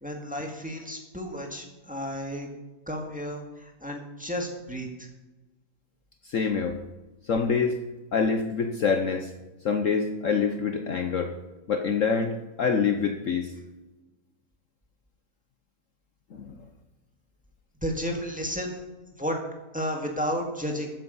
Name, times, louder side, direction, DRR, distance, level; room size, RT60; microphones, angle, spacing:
voice 1, 0.0-2.5 2.9-5.1 17.8-18.8 19.2-19.4 19.7-20.9, equal, 5° right, 1 dB, 1.9 m, -32 dB
voice 2, 6.2-6.8 7.3-7.8 8.1-9.3 9.6-11.3 11.7-13.5 16.3-16.5, left 5 dB, 55° left, 6 dB, 1.1 m, -26 dB
14.0 x 9.0 x 5.4 m, 1.1 s
omnidirectional pair, 1.7 m